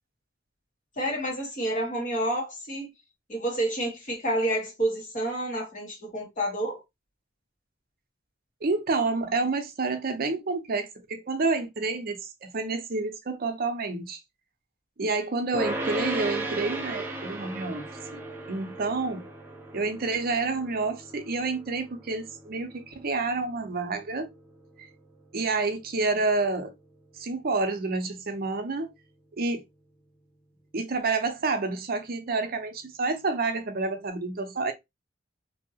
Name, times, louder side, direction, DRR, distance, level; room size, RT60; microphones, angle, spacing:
voice 1, 1.0-2.9 3.3-6.8, right 1 dB, 45° left, 1.4 m, -29 dB
voice 2, 8.6-14.2 15.0-17.9 18.1-18.2 18.5-19.3 19.7-24.3 24.8-24.9 25.3-26.7 27.2-28.9 29.4-29.6 30.7-34.7, right 3 dB, 55° right, 0.6 m, -29 dB
sound 1, 15.5-26.9, right 2 dB, 10° right, 0.8 m, -37 dB
2.8 x 2.7 x 2.7 m
head